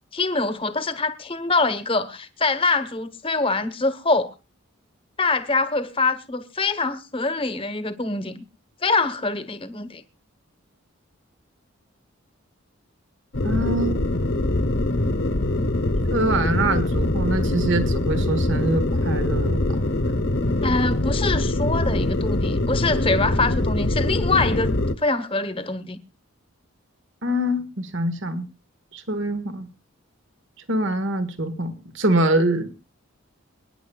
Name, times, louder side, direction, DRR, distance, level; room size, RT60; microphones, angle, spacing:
voice 1, 0.1-4.3 5.2-8.4 8.8-10.0 20.6-26.0, left 3 dB, 25° left, 1.0 m, -24 dB
sound 1, 13.3-24.9, left 1 dB, 60° left, 1.0 m, -23 dB
voice 2, 13.4-14.1 16.1-19.6 27.2-28.5 28.9-29.7 30.7-32.7, right 1 dB, 60° right, 1.3 m, -24 dB
28.5 x 9.9 x 2.3 m
head